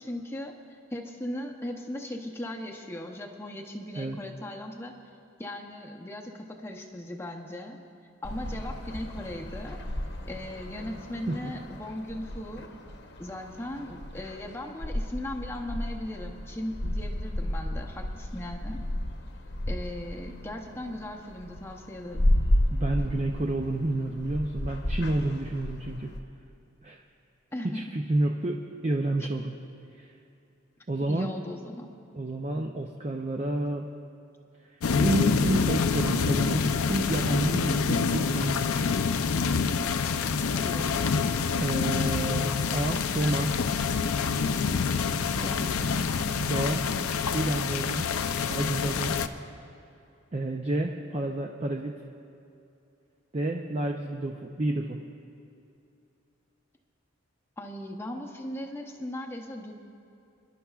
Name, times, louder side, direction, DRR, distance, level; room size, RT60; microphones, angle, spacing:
voice 1, 0.0-5.0 5.4-7.8 8.2-9.8 10.3-12.7 13.2-18.8 19.7-22.4 27.5-27.9 31.1-31.9 40.5-41.2 43.2-43.9 45.3-46.4 57.6-59.7, left 1 dB, 10° left, 1 dB, 0.7 m, -38 dB
sound 1, 8.2-26.2, left 1 dB, 55° left, 0.9 m, -33 dB
voice 2, 22.7-26.1 26.8-27.0 27.6-29.5 30.0-30.1 30.9-31.4 32.1-33.9 35.0-39.0 41.6-43.5 45.6-45.7 46.4-46.8 47.3-48.1 48.5-49.2 50.3-52.0 53.3-55.0, right 2 dB, 30° right, 1 dB, 0.5 m, -29 dB
sound 2, 34.8-49.3, left 5 dB, 90° left, 0.5 m, -27 dB
27.5 x 11.0 x 2.4 m, 2.7 s
head